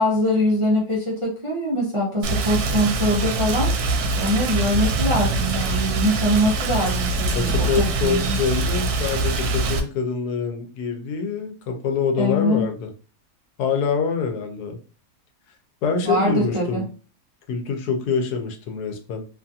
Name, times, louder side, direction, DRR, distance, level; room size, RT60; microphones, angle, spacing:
voice 1, 0.0-3.7 4.1-8.4 12.2-12.6 16.0-16.8, equal, 35° right, -4 dB, 0.5 m, -23 dB
Rain, 2.2-9.8, right 3 dB, 75° right, 1.1 m, -23 dB
voice 2, 7.3-12.9 13.6-14.8 15.8-16.8 17.5-19.3, left 5 dB, 90° left, 5 dB, 1.2 m, -25 dB
2.9 x 2.4 x 2.6 m, 0.37 s
omnidirectional pair, 1.6 m